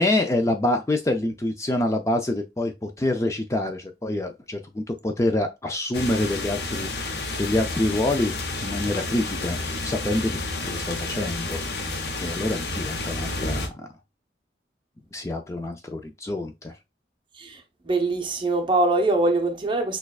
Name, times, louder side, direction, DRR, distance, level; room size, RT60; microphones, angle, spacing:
voice 1, 0.0-8.3 8.6-13.9 15.1-16.7, left 1 dB, 15° left, 0.4 m, -26 dB
sound 1, 5.9-13.7, left 2 dB, 70° left, 0.8 m, -30 dB
voice 2, 17.9-20.0, right 2 dB, 30° right, 0.7 m, -23 dB
6.3 x 2.3 x 2.3 m
head